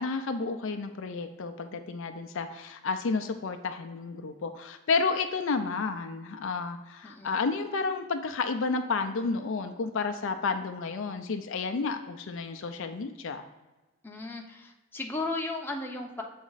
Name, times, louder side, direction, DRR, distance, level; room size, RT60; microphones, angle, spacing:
voice 1, 0.0-13.5, left 4 dB, 60° left, 7 dB, 0.4 m, -31 dB
voice 2, 7.0-7.4 14.0-16.2, left 2 dB, 10° left, 0 dB, 0.7 m, -35 dB
7.2 x 4.3 x 3.9 m, 1.1 s
head